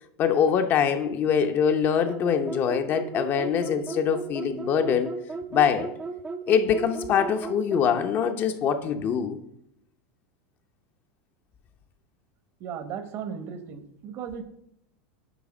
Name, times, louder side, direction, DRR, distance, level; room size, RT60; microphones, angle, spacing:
voice 1, 0.2-5.1 5.5-5.9 6.5-9.4, left 7 dB, 40° left, 0.7 m, -24 dB
sound 1, 2.1-7.9, right 4 dB, 15° right, 0.5 m, -35 dB
voice 2, 12.6-14.4, right 7 dB, 50° right, 1.0 m, -36 dB
9.3 x 3.4 x 6.1 m
supercardioid pair, 125°, 6 cm